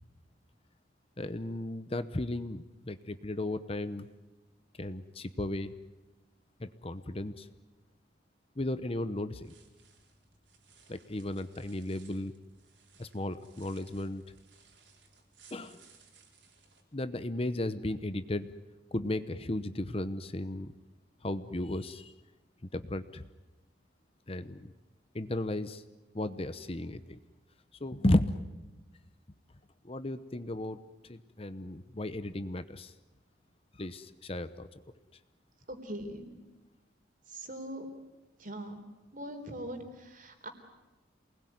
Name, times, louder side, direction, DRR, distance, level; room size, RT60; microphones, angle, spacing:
voice 1, 1.2-4.1 4.8-5.7 6.6-7.5 8.6-9.5 10.9-12.3 13.0-14.2 15.5-15.8 16.9-18.5 18.9-20.7 21.2-22.1 22.7-23.2 24.3-24.7 25.1-25.8 26.1-27.2 27.8-28.5 29.8-32.9 33.8-34.7, left 1 dB, 30° left, 12 dB, 0.9 m, -34 dB
sound 1, 9.3-16.8, right 5 dB, 70° right, 4.7 m, -61 dB
voice 2, 35.7-36.3 37.3-37.9 38.4-38.8 39.1-40.5, right 1 dB, 45° right, 7 dB, 3.9 m, -41 dB
28.0 x 20.5 x 9.4 m, 1.1 s
head